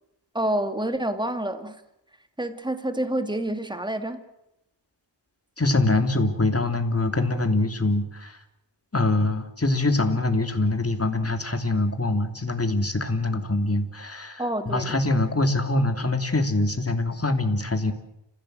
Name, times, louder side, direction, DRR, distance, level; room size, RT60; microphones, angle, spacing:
voice 1, 0.3-1.8 2.4-4.2 14.4-15.0, right 1 dB, 10° right, 8 dB, 2.4 m, -28 dB
voice 2, 5.6-8.4 8.9-17.9, left 2 dB, 30° left, 7 dB, 3.0 m, -24 dB
29.5 x 16.0 x 7.9 m, 0.83 s
wide cardioid pair, 70°, 44 cm